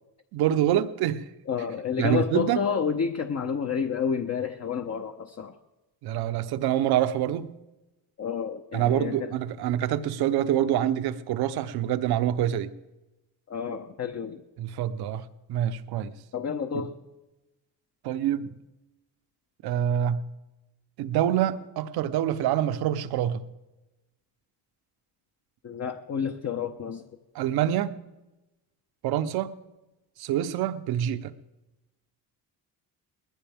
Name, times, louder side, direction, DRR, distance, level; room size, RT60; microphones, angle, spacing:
voice 1, 0.3-1.3 2.0-2.6 6.0-7.6 8.7-12.7 14.6-16.1 16.7-16.8 18.0-18.6 19.6-20.3 21.0-23.4 27.3-28.0 29.0-29.6 30.2-31.3, right 11 dB, 80° right, 12 dB, 0.9 m, -26 dB
voice 2, 1.5-5.6 8.2-9.3 13.5-14.4 16.3-17.0 25.6-27.0, left 6 dB, 45° left, 5 dB, 1.0 m, -30 dB
20.0 x 15.0 x 3.6 m, 1.0 s
cardioid pair, 85°, 37 cm